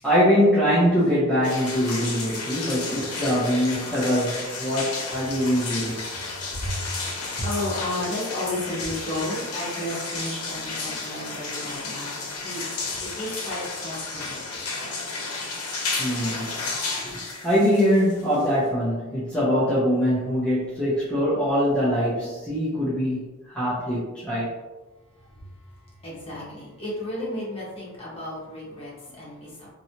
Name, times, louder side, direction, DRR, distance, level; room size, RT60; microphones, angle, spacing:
voice 1, 0.0-6.0 16.0-16.6 17.4-23.3 23.5-24.5, equal, 5° left, -10 dB, 0.7 m, -23 dB
sound 1, 1.4-18.7, left 3 dB, 85° left, 0.8 m, -32 dB
voice 2, 6.5-6.8 7.4-12.6 13.0-14.6 25.1-29.7, left 1 dB, 25° left, -7 dB, 1.2 m, -33 dB
3.0 x 2.7 x 2.8 m, 1.2 s
head